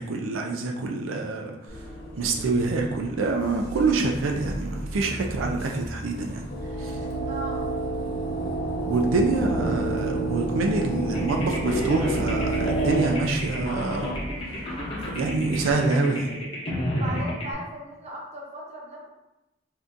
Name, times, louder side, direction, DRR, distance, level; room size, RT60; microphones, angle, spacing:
voice 1, 0.0-1.5 2.2-6.5 6.8-7.0 8.9-14.2 15.1-16.3, right 3 dB, 90° right, 1 dB, 0.4 m, -26 dB
Bus, 1.7-15.7, equal, 55° left, 1.0 m, -38 dB
sound 1, 6.5-13.0, right 3 dB, 80° left, 0.6 m, -29 dB
voice 2, 7.3-7.6 16.8-19.1, right 1 dB, 35° right, -3 dB, 0.7 m, -37 dB
sound 2, 11.1-17.5, left 1 dB, 30° left, 0.6 m, -31 dB
2.7 x 2.4 x 3.5 m, 0.93 s
head